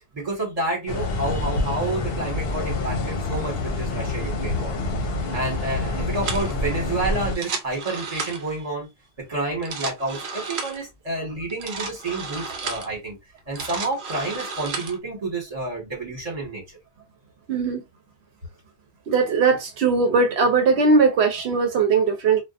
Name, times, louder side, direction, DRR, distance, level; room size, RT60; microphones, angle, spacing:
voice 1, 0.1-4.7 5.3-8.9 9.3-13.2 13.5-16.6, right 2 dB, 35° right, 1.4 m, -29 dB
sound 1, 0.9-7.4, left 2 dB, 70° left, 0.9 m, -27 dB
sound 2, 6.2-6.5 7.2-8.6 9.5-10.8 11.5-12.9 13.4-15.0, right 4 dB, 60° right, 0.7 m, -33 dB
voice 2, 17.5-17.8 19.1-22.4, right 4 dB, 85° right, 0.9 m, -19 dB
2.4 x 2.3 x 2.4 m
omnidirectional pair, 1.1 m